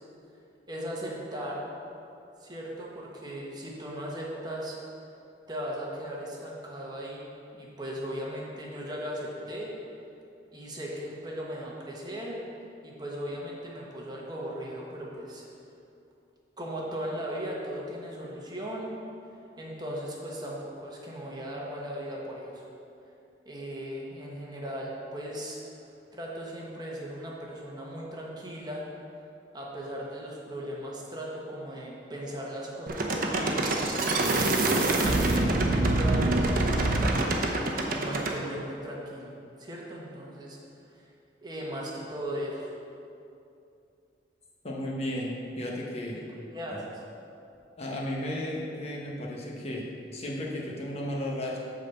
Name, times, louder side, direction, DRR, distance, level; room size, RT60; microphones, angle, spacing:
voice 1, 0.7-1.6 2.4-4.8 5.5-9.7 10.5-12.4 12.8-15.4 16.6-18.9 19.6-22.7 23.4-25.6 26.1-28.8 29.5-33.7 34.7-36.9 37.9-39.3 39.6-40.6 40.9-41.1 41.4-42.7 46.5-46.8, equal, 25° right, -3 dB, 1.2 m, -37 dB
sound 1, 32.9-38.4, right 2 dB, 50° right, 0.8 m, -25 dB
voice 2, 44.6-46.2 46.7-46.8 47.8-49.9 50.1-51.6, left 1 dB, 35° left, -3 dB, 1.1 m, -34 dB
8.6 x 4.0 x 7.0 m, 2.7 s
head